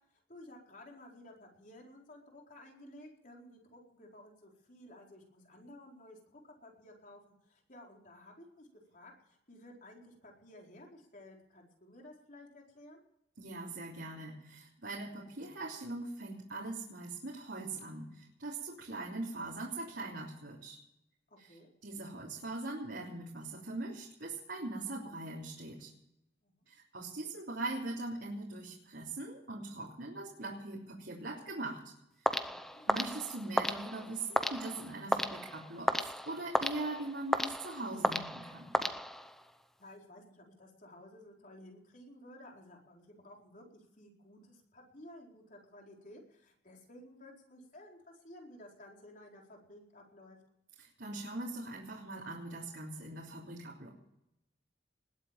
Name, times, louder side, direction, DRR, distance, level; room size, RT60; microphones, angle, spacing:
voice 1, 0.3-13.0 21.3-21.7 26.4-26.6 32.5-33.0 39.8-50.4, left 1 dB, 45° left, 0 dB, 4.5 m, -55 dB
voice 2, 13.4-20.8 21.4-25.9 26.7-31.8 32.9-38.8 50.8-53.9, right 2 dB, 70° right, -4 dB, 3.3 m, -41 dB
sound 1, 32.3-39.5, equal, ahead, 0.8 m, -34 dB
20.5 x 8.5 x 7.4 m, 0.82 s
head